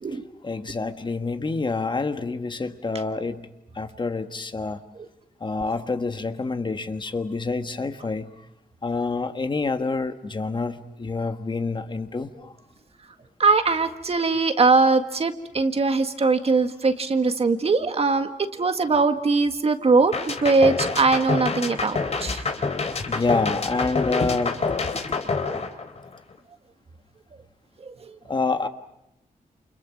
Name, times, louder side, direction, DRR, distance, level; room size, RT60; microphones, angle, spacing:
voice 1, 0.1-3.5 3.7-4.8 5.4-8.3 8.8-12.5 23.0-25.2 28.3-28.7, left 3 dB, 30° left, 8 dB, 1.4 m, -27 dB
voice 2, 13.4-18.3 18.6-22.4, right 3 dB, 45° right, 7 dB, 1.8 m, -21 dB
sound 1, 20.1-26.3, left 4 dB, 45° left, 3.0 m, -27 dB
29.0 x 29.0 x 6.1 m, 0.85 s
wide cardioid pair, 135°, 15 cm